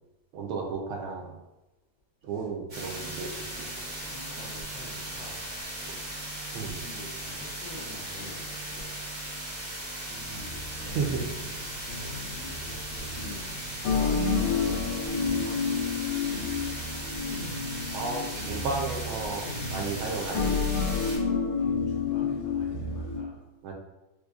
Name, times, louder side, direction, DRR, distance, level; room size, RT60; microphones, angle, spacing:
voice 1, 0.3-1.3 2.2-3.5 6.5-6.8 10.9-11.2 17.9-19.5 19.7-20.6 23.6-23.7, right 4 dB, 80° right, 1 dB, 1.4 m, -33 dB
sound 1, 2.7-21.2, right 1 dB, 60° right, 0.4 m, -38 dB
voice 2, 3.6-5.5 5.7-6.0 6.5-8.9 9.5-11.1 12.3-16.1 21.6-23.5, left 2 dB, 65° left, -5 dB, 1.3 m, -46 dB
sound 2, 10.3-23.2, left 5 dB, 90° left, 1.5 m, -30 dB
4.8 x 2.2 x 2.3 m, 0.98 s
omnidirectional pair, 2.3 m